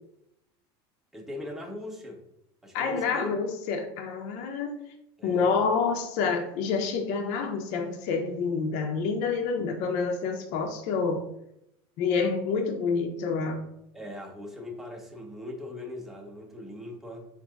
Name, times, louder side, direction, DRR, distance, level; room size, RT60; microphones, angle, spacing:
voice 1, 1.1-2.2 2.6-3.4 5.2-5.6 13.9-17.3, left 1 dB, ahead, 0 dB, 0.7 m, -39 dB
voice 2, 2.7-4.8 5.2-11.2 12.0-13.6, left 5 dB, 60° left, 3 dB, 0.7 m, -28 dB
3.9 x 2.7 x 3.5 m, 0.81 s
supercardioid pair, 115°, 14 cm